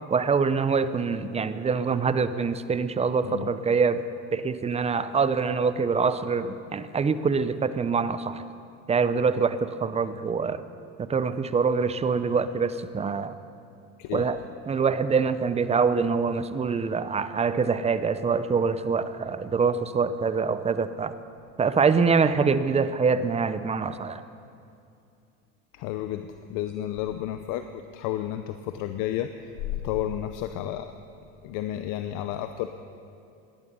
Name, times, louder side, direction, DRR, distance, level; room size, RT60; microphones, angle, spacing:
voice 1, 0.1-4.0 4.3-8.4 8.9-10.6 11.0-13.4 14.1-14.4 14.7-21.1 21.6-24.2, right 5 dB, 20° right, 13 dB, 0.6 m, -25 dB
voice 2, 25.7-29.3 29.8-30.9 31.4-32.7, left 12 dB, 65° left, 9 dB, 0.7 m, -31 dB
18.0 x 11.5 x 5.5 m, 2.5 s
supercardioid pair, 110°, 34 cm